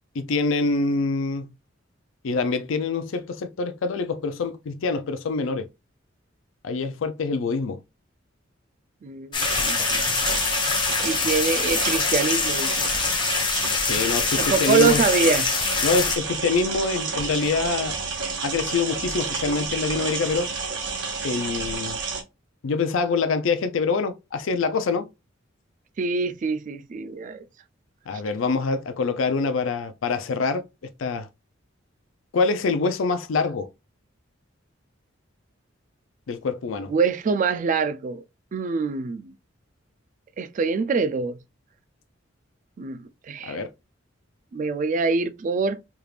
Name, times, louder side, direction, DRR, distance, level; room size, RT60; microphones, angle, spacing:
voice 1, 0.2-1.5 2.2-5.7 6.6-7.8 13.9-15.0 15.8-18.0 18.4-20.5 21.2-22.0 22.6-25.1 28.1-30.6 31.0-31.3 32.3-33.7 36.3-36.9 43.4-43.7, left 4 dB, 80° left, 0.4 m, -25 dB
voice 2, 9.0-10.0 11.0-12.8 14.4-15.5 26.0-27.4 36.9-38.2 38.5-39.3 40.4-41.4 42.8-43.0 43.3-43.6 44.5-45.8, right 4 dB, 40° right, 0.3 m, -24 dB
sound 1, 9.3-16.2, left 5 dB, 25° left, 0.5 m, -25 dB
sound 2, 9.4-22.2, right 4 dB, 65° right, 0.9 m, -30 dB
3.4 x 2.4 x 3.2 m
head